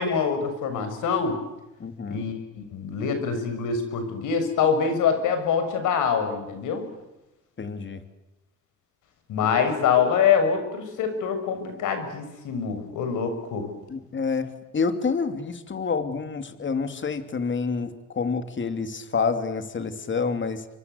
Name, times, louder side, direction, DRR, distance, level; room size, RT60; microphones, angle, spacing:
voice 1, 0.0-1.4 2.1-6.8 9.3-13.7, left 6 dB, 85° left, 8 dB, 6.8 m, -25 dB
voice 2, 1.8-2.2 7.6-8.0 13.9-20.7, left 5 dB, 40° left, 9 dB, 3.1 m, -28 dB
29.0 x 24.0 x 8.3 m, 0.95 s
cardioid pair, 90°, 30 cm